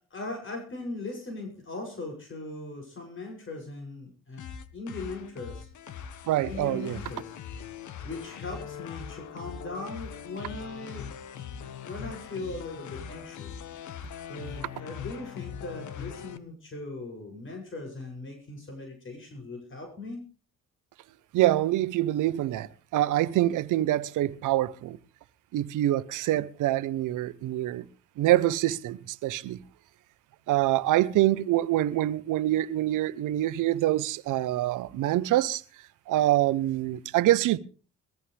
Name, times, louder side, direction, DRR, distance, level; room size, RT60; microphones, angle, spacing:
voice 1, 0.1-4.4 4.7-5.7 6.4-7.3 8.0-11.1 11.6-13.6 14.3-20.3, left 2 dB, 40° left, 7.5 m, -39 dB
sound 1, 4.4-16.4, left 8 dB, 75° left, 1.7 m, -41 dB
voice 2, 6.3-7.0 21.3-25.0 25.5-27.8 28.2-29.6 30.5-35.6 36.1-37.6, right 14 dB, 85° right, 1.0 m, -25 dB
22.5 x 14.5 x 3.5 m
cardioid pair, 90°, 30 cm